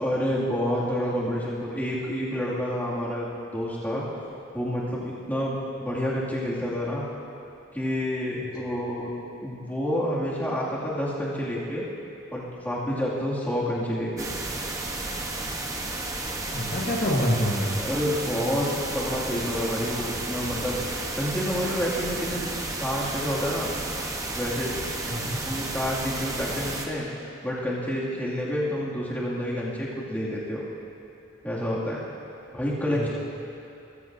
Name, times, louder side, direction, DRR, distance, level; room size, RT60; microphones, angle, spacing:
voice 1, 0.0-3.3 3.5-4.0 4.5-7.0 7.7-9.1 9.4-11.8 12.3-14.3 17.8-22.4 22.8-23.7 24.3-24.8 25.4-27.0 27.4-30.6 31.4-32.0 32.5-33.1, equal, 10° left, -7 dB, 2.3 m, -28 dB
sound 1, 14.2-26.9, right 2 dB, 15° right, 1.0 m, -32 dB
voice 2, 16.5-17.7 25.1-25.4 32.9-33.1, equal, 45° left, -4 dB, 1.4 m, -26 dB
sound 2, 20.4-23.0, left 1 dB, 65° right, 1.9 m, -46 dB
20.5 x 15.0 x 2.7 m, 2.9 s
head